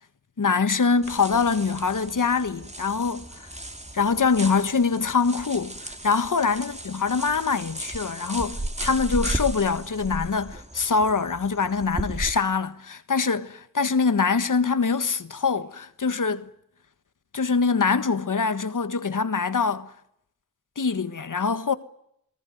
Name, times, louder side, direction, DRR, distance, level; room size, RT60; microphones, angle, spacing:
voice 1, 0.4-3.5 3.9-16.4 17.3-19.9 20.8-21.7, left 5 dB, 80° left, 1.5 m, -24 dB
sound 1, 1.0-12.3, right 1 dB, 20° right, 2.9 m, -35 dB
29.0 x 19.0 x 9.3 m
wide cardioid pair, 50°, 31 cm